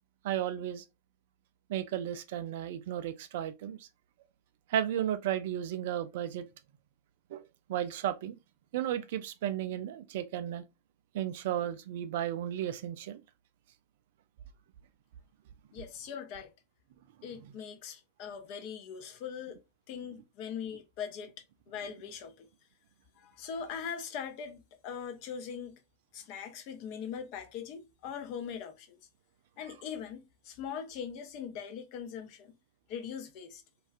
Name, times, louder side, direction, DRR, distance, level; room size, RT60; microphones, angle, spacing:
voice 1, 0.2-0.8 1.7-3.9 4.7-6.5 7.3-7.4 7.7-8.4 8.7-10.6 11.1-13.2, right 11 dB, 55° right, 0.3 m, -34 dB
voice 2, 15.7-16.5 17.2-21.3 21.7-22.5 23.2-25.8 26.1-29.0 29.6-32.6 32.9-33.6, left 7 dB, 45° left, 0.5 m, -41 dB
2.3 x 2.3 x 2.4 m
figure-of-eight pair, 90°, 0 cm